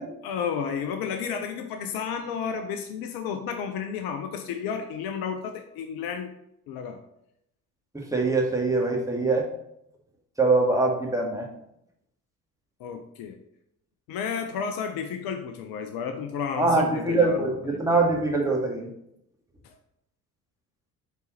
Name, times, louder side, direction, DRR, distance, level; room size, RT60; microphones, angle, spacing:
voice 1, 0.2-6.3 6.7-7.0 12.8-13.4 14.1-17.8 19.6-19.7, left 6 dB, 55° left, 6 dB, 0.7 m, -32 dB
voice 2, 7.9-9.5 10.4-11.4 16.6-18.9, right 3 dB, 5° right, -1 dB, 1.7 m, -23 dB
8.3 x 4.0 x 3.0 m, 0.78 s
figure-of-eight pair, 55°, 44 cm